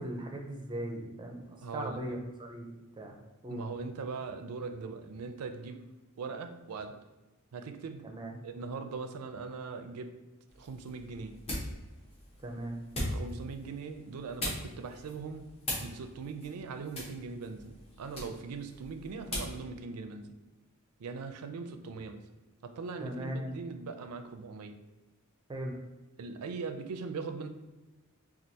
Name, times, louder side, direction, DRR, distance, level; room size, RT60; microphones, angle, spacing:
voice 1, 0.0-2.7 2.9-3.2 3.4-3.6 8.0-8.4 12.4-12.7 23.0-23.6 25.5-25.8, right 1 dB, 20° right, 1 dB, 0.5 m, -38 dB
voice 2, 1.6-2.2 3.5-5.8 6.2-7.0 7.5-8.1 8.4-10.1 10.6-11.4 13.0-15.5 15.8-20.3 21.0-22.2 22.6-24.7 26.2-27.5, right 4 dB, 80° right, 7 dB, 0.4 m, -40 dB
sound 1, 10.5-19.6, left 1 dB, 25° left, 1.0 m, -41 dB
4.4 x 2.3 x 2.7 m, 1.1 s
head